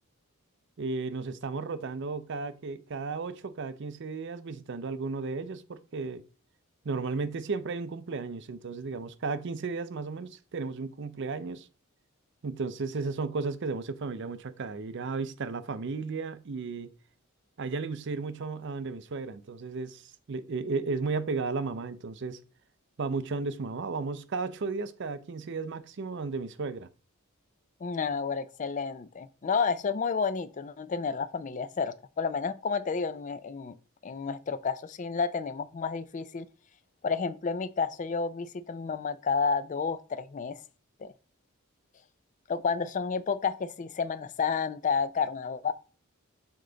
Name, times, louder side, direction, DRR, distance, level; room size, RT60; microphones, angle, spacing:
voice 1, 0.8-6.2 6.8-11.7 12.4-16.9 17.6-22.4 23.0-26.9, right 4 dB, 55° right, 0.5 m, -34 dB
voice 2, 27.8-33.8 34.0-36.5 37.0-40.6 41.0-41.1 42.5-45.7, left 5 dB, 35° left, 0.4 m, -30 dB
6.8 x 3.8 x 3.8 m
head